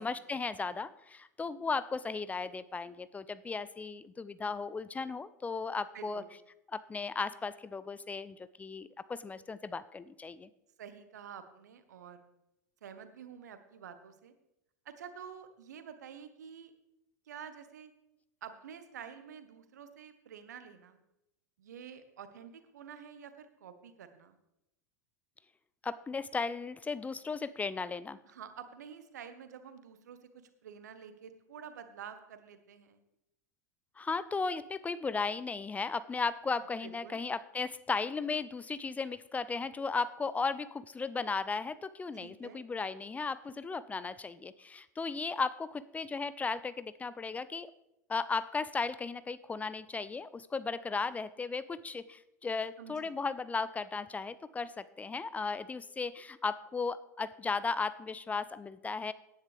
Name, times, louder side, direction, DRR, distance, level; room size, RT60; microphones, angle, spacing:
voice 1, 0.0-6.2 6.7-10.5 25.8-28.2 34.0-47.7 48.1-59.1, left 4 dB, 15° left, 15 dB, 0.5 m, -36 dB
voice 2, 5.9-6.3 10.8-12.2 12.8-14.3 14.8-16.7 17.3-17.9 18.4-21.0 21.6-24.4 28.2-33.0 36.8-37.2 42.2-42.6 52.8-53.1, right 7 dB, 70° right, 10 dB, 1.3 m, -49 dB
17.5 x 10.0 x 3.4 m, 0.88 s
figure-of-eight pair, 85°, 10 cm